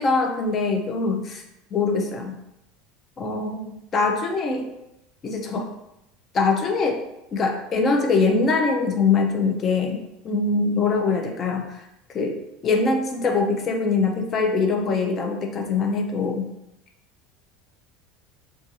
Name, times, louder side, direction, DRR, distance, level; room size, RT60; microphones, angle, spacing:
voice 1, 0.0-1.4 1.7-2.3 3.2-4.7 5.2-5.7 6.3-7.0 7.3-10.0 10.2-11.8 12.1-12.4 12.6-16.5, left 4 dB, 25° left, 3 dB, 0.3 m, -23 dB
2.4 x 2.3 x 2.7 m, 0.86 s
cardioid pair, 165°, 0 cm